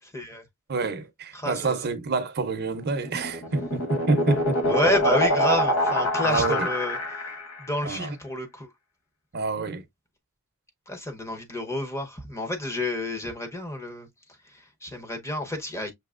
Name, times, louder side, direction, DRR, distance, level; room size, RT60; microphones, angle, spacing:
voice 1, 0.1-0.5 1.3-1.8 4.6-8.7 10.9-15.9, left 1 dB, 15° left, 0.8 m, -30 dB
voice 2, 0.7-4.6 6.2-6.6 7.8-8.1 9.3-9.8, right 3 dB, 50° right, 0.6 m, -27 dB
sound 1, 2.9-7.7, left 1 dB, 80° left, 1.0 m, -25 dB
6.1 x 2.8 x 2.4 m
head